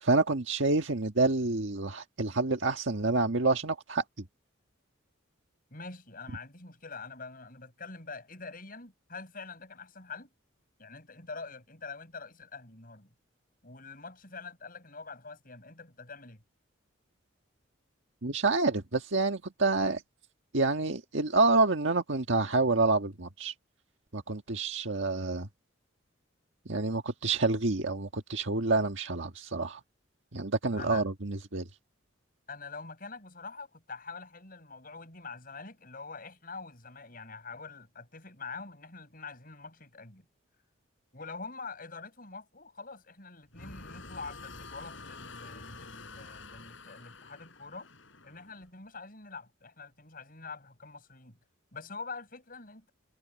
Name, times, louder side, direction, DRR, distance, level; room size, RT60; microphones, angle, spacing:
voice 1, 0.0-4.0 18.2-20.0 20.5-23.5 24.1-25.5 26.7-29.8 30.3-31.7, right 3 dB, 70° right, 1.6 m, -28 dB
voice 2, 5.7-10.3 10.8-13.1 13.6-16.4 30.8-31.1 32.5-40.2 41.1-47.9 48.2-51.4 51.7-52.9, left 4 dB, 45° left, 6.3 m, -45 dB
sound 1, 43.5-48.7, left 3 dB, 70° left, 7.1 m, -48 dB
head